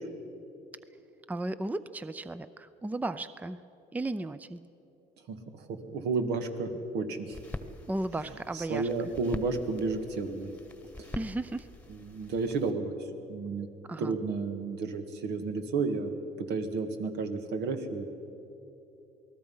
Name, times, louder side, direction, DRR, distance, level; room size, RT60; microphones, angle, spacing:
voice 1, 1.3-3.6 3.9-4.6 7.9-8.9 11.1-11.7 13.9-14.2, right 2 dB, 10° right, 13 dB, 0.5 m, -35 dB
voice 2, 5.3-7.4 8.5-10.5 11.0-11.1 12.0-12.9 13.3-13.7 14.0-16.1 16.4-18.1, right 4 dB, 80° right, 5 dB, 2.0 m, -32 dB
sound 1, 7.3-12.7, left 2 dB, 10° left, 1.3 m, -45 dB
28.0 x 19.0 x 5.6 m, 2.9 s
cardioid pair, 110°, 17 cm